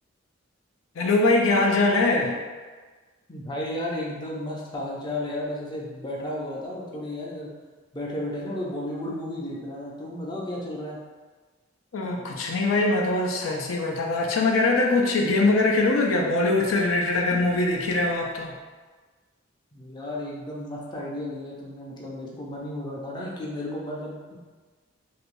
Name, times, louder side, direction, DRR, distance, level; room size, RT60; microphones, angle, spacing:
voice 1, 1.0-2.4 11.9-18.5, left 2 dB, 75° left, 0 dB, 0.4 m, -22 dB
voice 2, 3.3-7.5 7.9-11.0 19.7-24.2, left 1 dB, 20° left, -4 dB, 0.5 m, -33 dB
3.3 x 2.7 x 2.5 m, 1.4 s
head